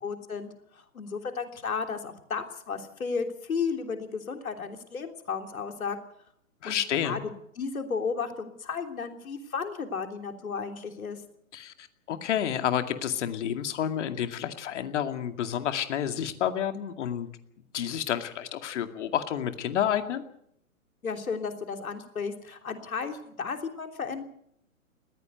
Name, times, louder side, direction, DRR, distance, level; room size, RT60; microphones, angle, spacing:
voice 1, 0.0-6.0 6.6-6.8 7.0-11.2 21.0-24.2, left 5 dB, 80° left, 5 dB, 3.3 m, -34 dB
voice 2, 6.6-7.2 11.5-17.3 17.7-20.2, left 9 dB, 55° left, 7 dB, 2.3 m, -30 dB
20.5 x 16.0 x 8.0 m, 0.72 s
hypercardioid pair, 125°, 42 cm